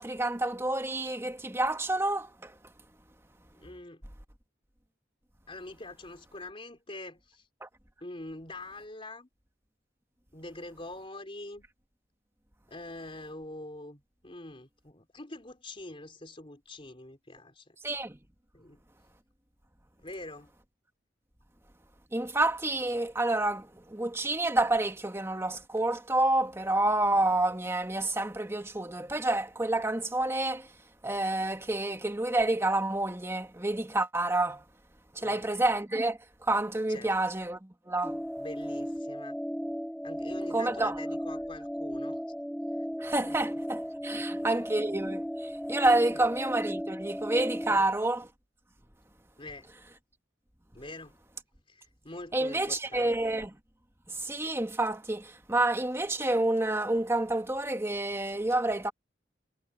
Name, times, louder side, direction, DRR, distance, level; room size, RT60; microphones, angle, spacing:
voice 1, 0.0-2.6 7.6-7.7 17.8-18.2 22.1-30.7 31.0-34.6 35.1-38.2 40.5-41.0 43.0-48.3 52.3-53.6 54.1-58.9, right 2 dB, 15° right, 2.1 m, -29 dB
voice 2, 3.6-4.0 5.5-7.5 8.0-9.3 10.3-11.7 12.7-17.8 18.5-18.8 20.0-20.5 35.2-35.5 36.9-37.1 38.4-39.4 40.0-42.2 42.7-42.9 43.3-43.4 44.1-44.5 46.1-46.2 47.7-47.9 49.4-49.7 50.7-51.2 51.7-53.1, left 2 dB, 30° left, 3.5 m, -44 dB
sound 1, 38.0-47.8, equal, ahead, 2.4 m, -35 dB
head